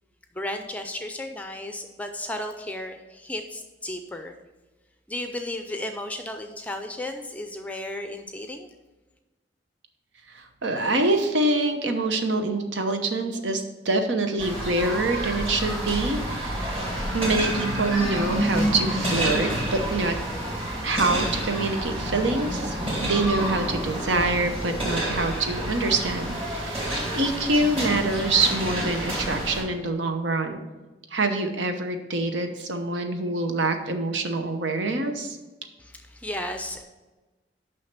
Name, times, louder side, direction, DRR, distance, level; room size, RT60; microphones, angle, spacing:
voice 1, 0.3-4.4 5.1-8.7 35.8-36.8, left 1 dB, 10° left, 6 dB, 0.4 m, -34 dB
voice 2, 10.3-16.7 17.1-20.2 20.8-30.6 31.1-35.4, right 2 dB, 85° right, 6 dB, 1.0 m, -25 dB
sound 1, 14.4-29.6, right 1 dB, 35° right, 2.3 m, -28 dB
6.4 x 5.7 x 5.8 m, 1.2 s
head